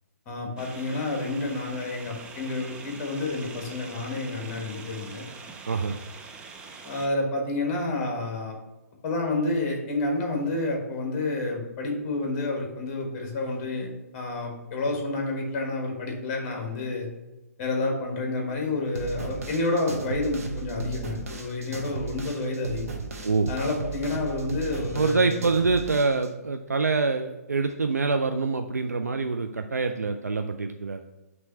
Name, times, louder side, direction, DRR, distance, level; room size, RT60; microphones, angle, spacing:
voice 1, 0.3-5.2 6.8-8.6 9.0-17.1 17.6-22.9 23.5-25.4, left 2 dB, 30° left, 1 dB, 1.4 m, -29 dB
sound 1, 0.6-7.1, right 4 dB, 10° right, 0.4 m, -44 dB
voice 2, 5.7-6.0 23.2-23.5 24.9-31.0, right 4 dB, 80° right, 6 dB, 0.4 m, -25 dB
sound 2, 18.9-26.3, right 4 dB, 60° right, 1.0 m, -35 dB
6.0 x 3.1 x 5.6 m, 1.1 s
figure-of-eight pair, 125°, 9 cm